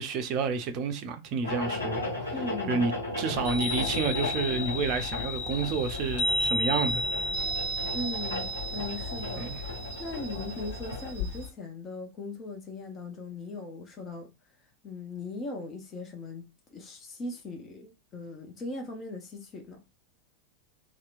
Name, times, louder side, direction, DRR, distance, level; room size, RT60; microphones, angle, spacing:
voice 1, 0.0-2.0 2.7-7.3 9.4-9.6, right 5 dB, 40° right, 0.5 m, -30 dB
sound 1, 1.4-11.1, left 2 dB, 80° left, 0.9 m, -36 dB
voice 2, 2.3-2.8 7.9-9.5 10.0-14.3 14.8-19.8, left 2 dB, 25° left, 0.7 m, -39 dB
Chime, 3.4-11.5, left 1 dB, 55° left, 1.2 m, -33 dB
2.8 x 2.1 x 2.5 m
figure-of-eight pair, 90°, 0 cm